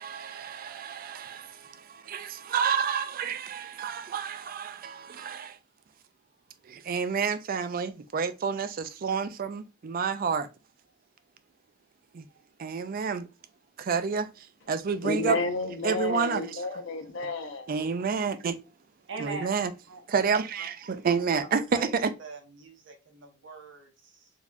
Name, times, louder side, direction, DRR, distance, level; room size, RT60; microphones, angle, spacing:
voice 1, 0.0-5.6 6.6-10.5 12.1-12.3 12.6-13.3 13.8-15.4 15.8-16.8 17.7-18.6 19.2-19.7 20.1-22.1, right 6 dB, 45° right, 0.4 m, -30 dB
voice 2, 15.0-17.7, left 3 dB, 60° left, 0.7 m, -31 dB
voice 3, 19.1-19.6 19.9-20.2 20.6-20.7 21.3-21.5 21.7-21.9 22.2-24.3, right 4 dB, 60° right, 0.9 m, -42 dB
4.0 x 2.9 x 2.4 m
head